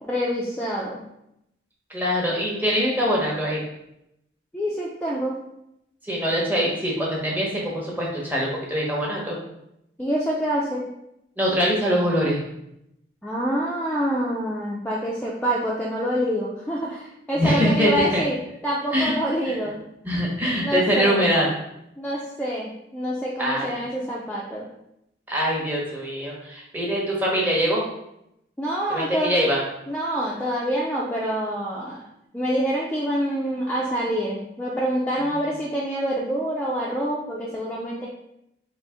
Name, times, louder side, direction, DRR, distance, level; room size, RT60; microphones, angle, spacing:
voice 1, 0.0-1.0 4.5-5.4 10.0-10.8 13.2-19.8 20.6-21.2 22.0-24.7 28.6-29.4 29.9-32.0 32.3-38.1, equal, 10° left, -5 dB, 0.4 m, -26 dB
voice 2, 1.9-3.6 6.1-9.4 11.4-12.4 17.4-18.2 18.9-19.1 20.0-21.5 23.4-23.7 25.3-27.8 28.9-29.6, equal, 10° right, -4 dB, 0.8 m, -23 dB
3.9 x 2.5 x 3.5 m, 0.82 s
head